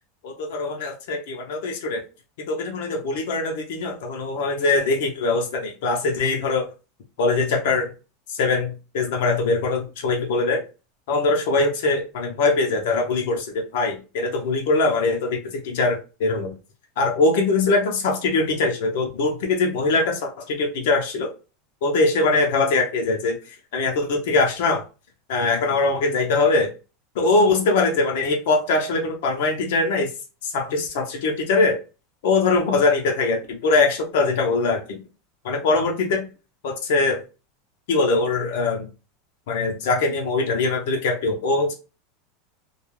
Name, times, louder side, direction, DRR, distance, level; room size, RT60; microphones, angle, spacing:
voice 1, 0.2-2.0 2.5-6.7 7.2-7.9 8.3-10.6 11.1-16.5 17.0-21.3 21.8-24.8 25.3-26.7 27.1-30.1 30.4-31.8 32.2-35.0 35.4-36.2 36.6-37.2 37.9-38.9 39.5-41.7, left 3 dB, 65° left, 2 dB, 0.7 m, -22 dB
2.3 x 2.3 x 3.1 m, 0.31 s
supercardioid pair, 175°, 0 cm